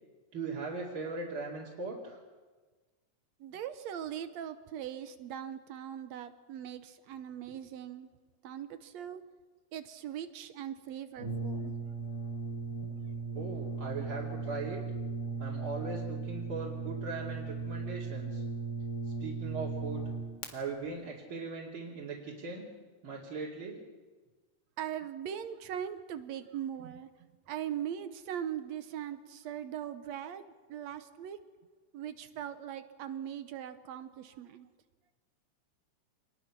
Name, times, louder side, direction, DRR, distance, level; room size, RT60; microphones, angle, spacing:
voice 1, 0.3-2.2 13.3-14.8 15.4-18.4 19.2-20.0 20.5-22.6 23.0-23.8, right 3 dB, 45° right, -4 dB, 3.3 m, -39 dB
voice 2, 3.4-8.1 8.4-9.2 9.7-11.7 12.8-12.9 24.8-27.1 27.5-31.4 31.9-34.7, right 10 dB, 70° right, 11 dB, 2.0 m, -40 dB
Brass instrument, 11.2-20.5, right 4 dB, 35° left, 2.3 m, -37 dB
26.5 x 20.5 x 6.0 m, 1.3 s
omnidirectional pair, 3.3 m